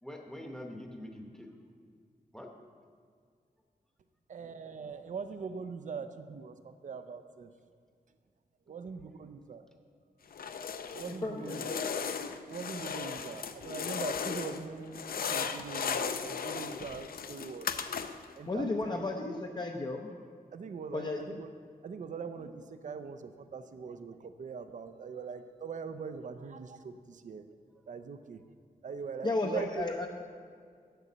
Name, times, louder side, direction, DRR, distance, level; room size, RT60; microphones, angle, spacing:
voice 1, 0.0-1.5 2.3-2.5, left 1 dB, 5° left, 3 dB, 0.9 m, -44 dB
voice 2, 4.3-7.5 8.7-9.6 10.6-11.9 12.5-17.8 18.4-19.1 20.5-21.5 21.8-27.5 27.9-28.4 28.8-29.9, right 5 dB, 55° right, 10 dB, 0.5 m, -42 dB
sound 1, 10.3-11.2 11.5-14.6 14.9-18.3, left 6 dB, 75° left, 0.5 m, -36 dB
voice 3, 11.2-11.7 18.4-20.1 20.9-21.2 29.2-30.1, left 2 dB, 30° left, 1 dB, 0.6 m, -33 dB
8.9 x 6.8 x 7.3 m, 2.1 s
wide cardioid pair, 160°, 15 cm